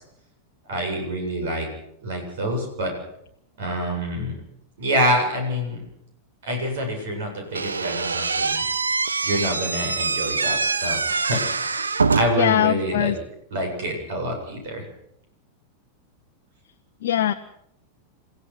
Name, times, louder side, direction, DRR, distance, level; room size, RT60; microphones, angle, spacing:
voice 1, 0.7-1.7 2.0-2.9 3.6-4.3 4.8-5.8 6.4-8.6 9.2-11.8 12.1-13.1 13.5-14.8, equal, 55° right, 3 dB, 7.8 m, -26 dB
Slam / Squeak, 7.5-12.5, right 4 dB, 75° right, 1.1 m, -24 dB
voice 2, 12.4-13.2 17.0-17.3, left 11 dB, 55° left, 5 dB, 0.9 m, -21 dB
28.0 x 16.5 x 6.2 m, 0.74 s
figure-of-eight pair, 90°, 0 cm